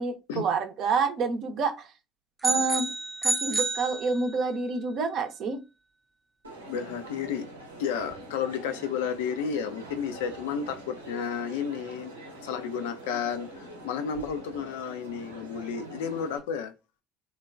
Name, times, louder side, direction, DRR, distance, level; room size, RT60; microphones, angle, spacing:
voice 1, 0.0-1.9 2.4-2.9 3.2-5.6, right 4 dB, 50° right, 0.6 m, -28 dB
sound 1, 2.4-4.6, right 2 dB, 5° right, 0.5 m, -29 dB
Crowd, 6.4-16.4, right 1 dB, 90° right, 0.7 m, -44 dB
voice 2, 6.7-7.4 7.8-12.1 12.4-16.7, left 7 dB, 70° left, 0.4 m, -32 dB
3.1 x 2.2 x 2.4 m
figure-of-eight pair, 60°, 0 cm